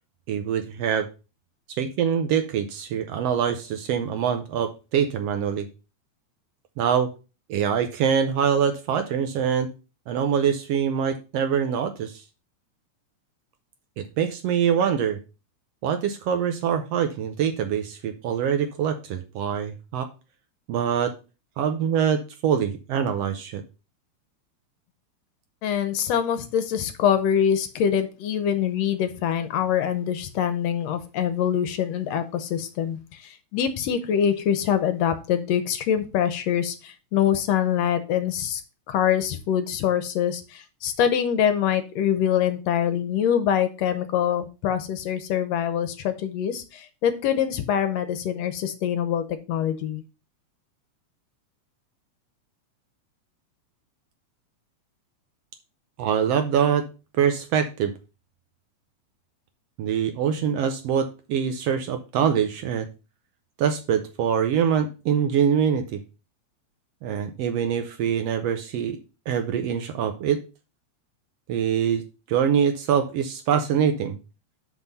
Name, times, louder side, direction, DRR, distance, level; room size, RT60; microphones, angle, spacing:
voice 1, 0.3-1.1 1.8-5.7 6.8-7.1 7.5-9.7 10.1-12.2 14.0-15.2 15.8-20.1 20.7-21.1 21.6-23.6 56.0-56.9 57.2-57.9 59.8-62.9 63.6-66.0 67.0-69.0 69.3-70.4 71.5-72.0 72.3-74.2, right 8 dB, 75° right, 8 dB, 1.6 m, -24 dB
voice 2, 25.6-38.6 38.9-50.0, left 9 dB, 75° left, 10 dB, 1.8 m, -24 dB
6.2 x 5.4 x 5.4 m, 0.32 s
omnidirectional pair, 3.3 m